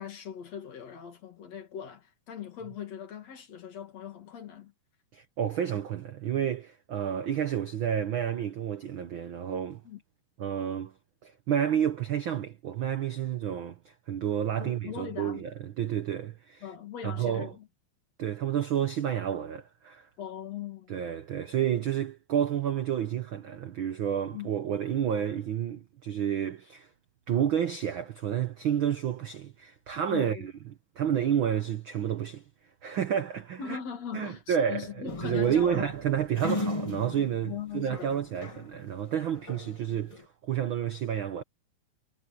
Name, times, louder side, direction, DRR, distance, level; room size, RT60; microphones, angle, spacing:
voice 1, 0.0-4.7 9.9-10.0 14.6-15.4 16.6-17.7 20.2-21.0 24.3-24.5 30.1-30.5 33.6-35.9 37.5-38.1, left 9 dB, 55° left, 3.3 m, -40 dB
voice 2, 5.1-9.8 10.4-10.9 11.2-16.7 17.0-17.5 18.2-20.1 20.9-26.9 27.3-30.5 30.9-32.4 32.8-33.8 34.1-41.4, right 9 dB, 70° right, 1.1 m, -30 dB
sound 1, 35.1-38.8 39.1-40.2, left 2 dB, 35° left, 0.5 m, -37 dB
omnidirectional pair, 3.6 m